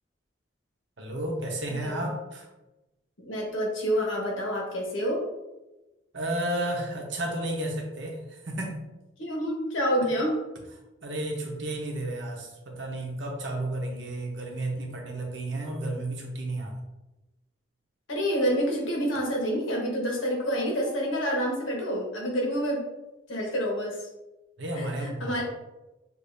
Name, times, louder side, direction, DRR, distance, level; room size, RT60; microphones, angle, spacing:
voice 1, 1.0-2.5 6.1-8.8 11.0-16.8 24.6-25.4, right 1 dB, 70° right, 1 dB, 0.9 m, -32 dB
voice 2, 3.2-5.2 9.2-10.4 18.1-22.8 23.3-24.1 24.7-25.4, equal, 90° left, -1 dB, 1.3 m, -28 dB
6.7 x 2.6 x 2.6 m, 1.0 s
head